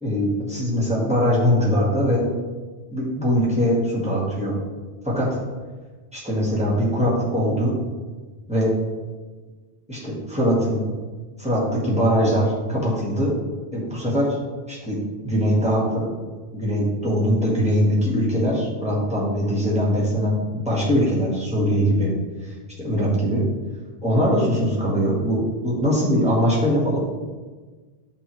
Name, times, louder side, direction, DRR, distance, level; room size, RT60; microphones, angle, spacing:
voice 1, 0.0-2.2 2.9-4.6 5.0-5.3 6.1-7.7 8.5-8.7 9.9-10.8 11.4-13.3 13.7-14.3 14.7-15.0 15.2-16.1 16.5-20.4 20.6-22.1 22.8-23.5 24.0-27.0, equal, 5° right, -7 dB, 1.4 m, -21 dB
9.2 x 3.3 x 3.1 m, 1.4 s
omnidirectional pair, 1.2 m